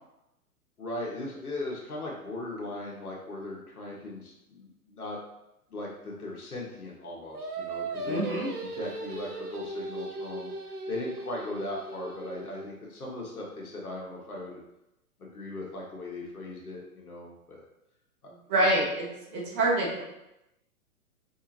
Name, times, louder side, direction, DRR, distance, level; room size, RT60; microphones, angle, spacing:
voice 1, 0.8-5.2 5.7-10.5 10.9-14.6 15.2-17.6 18.2-18.7, left 2 dB, 75° left, -3 dB, 1.6 m, -38 dB
Singing, 7.3-12.7, right 2 dB, 90° right, 0.8 m, -37 dB
voice 2, 8.0-8.5 18.5-19.0 19.3-20.0, right 1 dB, 25° right, -6 dB, 1.6 m, -26 dB
5.0 x 3.6 x 2.9 m, 0.87 s
figure-of-eight pair, 110°, 44 cm